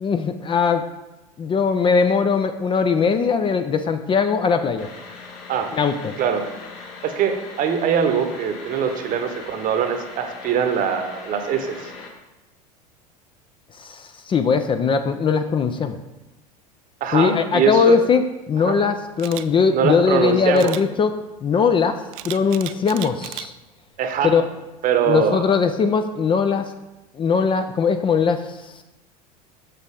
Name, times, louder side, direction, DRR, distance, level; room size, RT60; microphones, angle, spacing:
voice 1, 0.0-0.8 1.4-4.9 5.7-6.1 13.8-16.0 17.1-21.1 21.4-23.5 24.2-24.5 25.1-26.7 27.2-28.7, left 5 dB, 25° left, 9 dB, 0.4 m, -20 dB
sound 1, 4.8-12.1, left 4 dB, 60° left, 1.3 m, -40 dB
voice 2, 7.0-11.9 17.0-17.9 18.6-18.8 19.7-20.7 24.0-24.3 24.8-25.6, right 7 dB, 45° right, 7 dB, 1.0 m, -22 dB
Camera, 19.2-19.5 20.6-20.8 22.1-23.5 24.0-24.2, right 15 dB, 65° right, 0.4 m, -34 dB
6.6 x 5.9 x 3.7 m, 1.0 s
hypercardioid pair, 80°, 20 cm